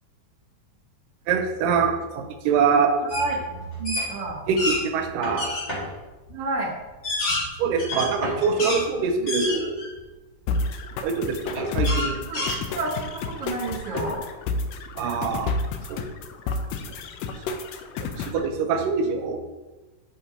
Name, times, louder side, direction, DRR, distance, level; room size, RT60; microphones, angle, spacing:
voice 1, 1.3-2.9 4.5-5.5 7.6-9.8 11.0-12.3 15.0-15.5 15.9-16.0 17.5-17.6 18.0-19.4, right 5 dB, 85° right, 4 dB, 2.4 m, -24 dB
sound 1, 3.1-3.3 3.6-4.8 5.4-5.7 6.3-6.4 6.9-8.8 9.3-10.0 10.5-10.6 11.8-13.1, left 2 dB, 55° left, 3.6 m, -28 dB
sound 2, 3.6-4.2 5.2-6.0 7.9-8.9 11.6-11.8 12.5-13.0 13.9-14.3, equal, 20° left, 1.4 m, -34 dB
voice 2, 3.8-4.4 6.3-6.7 9.2-9.3 12.3-12.5 12.7-14.2, right 3 dB, 55° right, -5 dB, 1.9 m, -29 dB
sound 3, 10.5-18.5, left 3 dB, 85° left, 1.6 m, -30 dB
8.5 x 6.1 x 2.8 m, 1.2 s
omnidirectional pair, 3.7 m